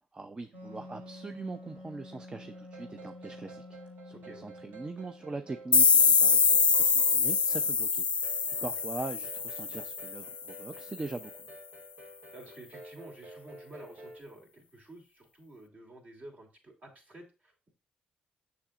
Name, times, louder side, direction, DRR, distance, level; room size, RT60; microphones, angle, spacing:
voice 1, 0.1-3.6 4.0-8.3 8.6-11.5, right 3 dB, 25° right, 7 dB, 0.6 m, -42 dB
Wind instrument woodwind instrument, 0.5-5.9, left 2 dB, 60° right, 3.8 m, -49 dB
sound 1, 2.5-14.2, right 2 dB, 80° right, 1.9 m, -51 dB
voice 2, 4.1-4.5 8.5-8.7 12.0-17.7, right 1 dB, 45° right, 2 dB, 3.1 m, -51 dB
sound 2, 5.7-10.4, left 5 dB, 35° left, 0.3 m, -24 dB
7.0 x 7.0 x 2.5 m, 0.31 s
cardioid pair, 80°, 3 cm